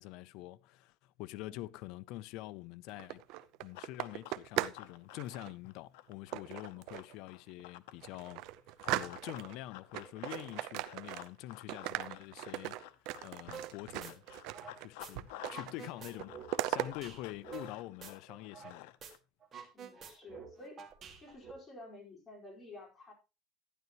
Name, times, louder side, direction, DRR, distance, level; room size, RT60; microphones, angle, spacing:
voice 1, 0.0-3.2 3.6-8.4 8.9-12.8 13.2-14.2 14.8-19.0, left 16 dB, 60° left, 0.5 m, -46 dB
sound 1, 2.9-4.9 5.1-5.5 6.3-7.1 7.6-7.7 8.0-9.6 9.9-11.4 11.7-14.9 15.2-15.8 16.0-16.9, right 15 dB, 60° right, 0.7 m, -38 dB
Run, 3.7-8.0 8.8-15.8 16.0-19.2, left 14 dB, 85° left, 0.8 m, -52 dB
sound 2, 13.5-13.7 14.0-15.1 15.4-18.7 19.0-19.1 19.4-21.5, right 7 dB, 30° right, 2.2 m, -48 dB
voice 2, 19.7-20.8 21.2-23.1, left 2 dB, 20° left, 4.8 m, -52 dB
12.0 x 10.5 x 3.1 m
cardioid pair, 150°, 0 cm